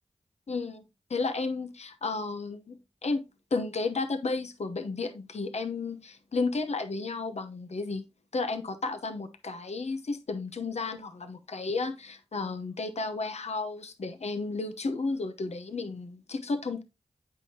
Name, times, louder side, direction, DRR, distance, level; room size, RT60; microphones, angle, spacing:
voice 1, 0.5-0.8 1.1-3.2 3.5-8.0 8.3-16.8, left 3 dB, 70° left, 0.8 m, -33 dB
8.1 x 5.6 x 2.8 m
cardioid pair, 45°, 12 cm